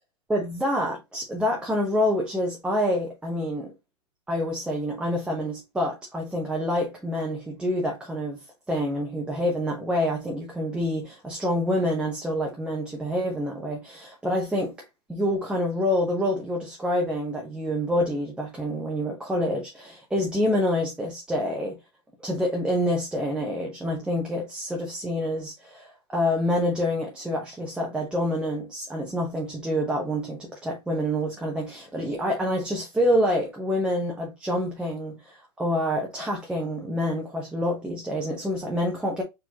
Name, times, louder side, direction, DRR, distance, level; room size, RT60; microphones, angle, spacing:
voice 1, 0.3-3.7 4.3-8.4 8.7-14.8 15.1-21.8 22.2-39.2, equal, 5° right, 0.9 m, -27 dB
4.5 x 4.1 x 2.9 m
hypercardioid pair, 145°, 20 cm